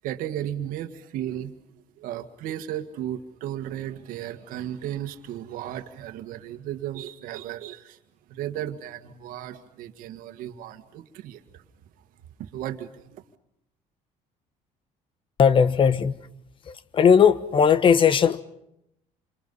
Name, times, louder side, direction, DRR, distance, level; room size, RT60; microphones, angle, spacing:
voice 1, 0.0-1.6 2.0-8.0 8.3-11.6 12.4-13.2, right 11 dB, 75° right, 1.9 m, -35 dB
voice 2, 15.4-16.1 16.7-18.4, left 7 dB, 35° left, 1.2 m, -18 dB
28.5 x 26.5 x 5.6 m
cardioid pair, 125°, 14 cm